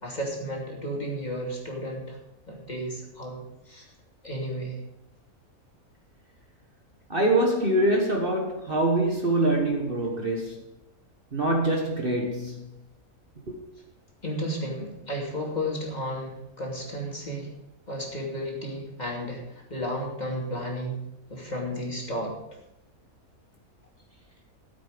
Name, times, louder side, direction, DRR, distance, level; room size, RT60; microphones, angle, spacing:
voice 1, 0.0-2.2 2.5-3.4 3.7-3.9 4.2-4.7 14.2-17.5 17.9-21.0 21.3-22.3, equal, 30° left, -2 dB, 2.8 m, -33 dB
voice 2, 7.1-10.6 11.3-12.6 13.5-13.6, right 1 dB, 40° right, 1 dB, 1.6 m, -24 dB
14.0 x 8.1 x 5.2 m, 0.86 s
omnidirectional pair, 1.6 m